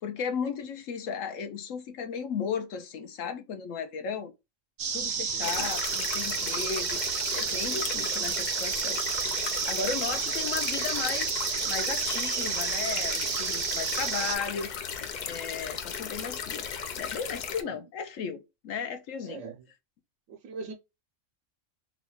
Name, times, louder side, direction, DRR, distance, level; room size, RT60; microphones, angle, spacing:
voice 1, 0.0-4.3 4.9-7.0 7.3-9.0 9.3-14.7 15.2-16.6 17.0-19.4, left 6 dB, 80° left, 1.1 m, -35 dB
sound 1, 4.8-14.4, right 7 dB, 60° right, 0.9 m, -31 dB
voice 2, 5.3-5.7 17.6-17.8 19.2-19.6 20.3-20.7, right 4 dB, 85° right, 1.1 m, -41 dB
sound 2, 5.4-17.6, left 7 dB, 60° left, 0.4 m, -36 dB
3.9 x 2.3 x 2.8 m
omnidirectional pair, 1.3 m